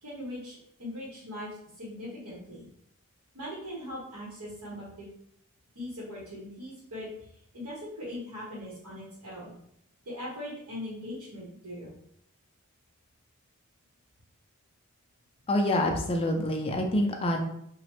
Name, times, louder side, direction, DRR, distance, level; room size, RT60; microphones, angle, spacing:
voice 1, 0.0-2.7 3.3-5.1 5.7-9.5 10.0-11.9, left 1 dB, 90° right, -6 dB, 0.9 m, -40 dB
voice 2, 15.5-17.4, left 1 dB, 25° left, 2 dB, 0.3 m, -26 dB
3.2 x 2.0 x 2.9 m, 0.71 s
head